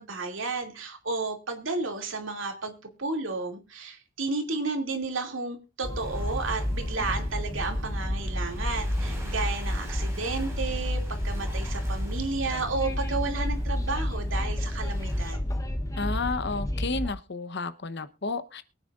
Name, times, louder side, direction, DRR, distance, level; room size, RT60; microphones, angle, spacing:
voice 1, 0.0-15.4, right 3 dB, 65° right, 4 dB, 2.6 m, -32 dB
Train, 5.8-17.1, left 1 dB, 15° left, 1.0 m, -30 dB
Waves surf, 5.9-15.3, right 1 dB, 15° right, 5.2 m, -47 dB
voice 2, 16.0-18.6, left 3 dB, 55° left, 13 dB, 0.9 m, -31 dB
23.0 x 9.2 x 2.5 m, 0.28 s
head